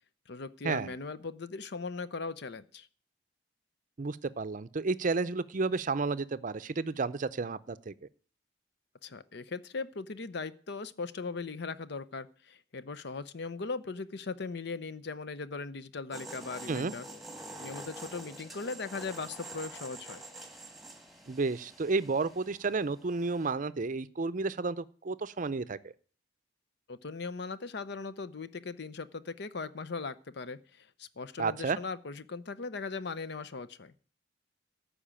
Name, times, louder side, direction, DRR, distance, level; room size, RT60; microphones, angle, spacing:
voice 1, 0.3-2.9 9.0-17.1 17.6-20.2 26.9-33.9, left 4 dB, 60° left, 15 dB, 0.7 m, -39 dB
voice 2, 4.0-7.9 16.7-16.9 21.3-25.9 31.4-31.8, right 3 dB, 45° right, 16 dB, 0.5 m, -31 dB
sound 1, 16.1-23.5, right 1 dB, ahead, 1.5 m, -47 dB
13.5 x 5.0 x 8.8 m, 0.43 s
head